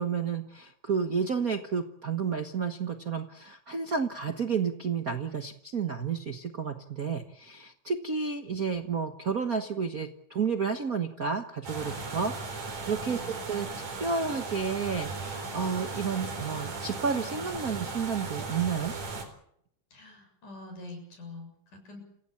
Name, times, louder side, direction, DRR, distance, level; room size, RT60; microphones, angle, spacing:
voice 1, 0.0-13.2 13.5-13.7 14.0-18.9, right 6 dB, 50° right, 7 dB, 1.0 m, -31 dB
sound 1, 11.6-19.2, right 3 dB, 75° right, 5.8 m, -37 dB
voice 2, 13.1-13.4 19.9-22.0, left 2 dB, 80° left, 3 dB, 8.6 m, -45 dB
28.5 x 16.5 x 8.6 m, 0.69 s
omnidirectional pair, 3.5 m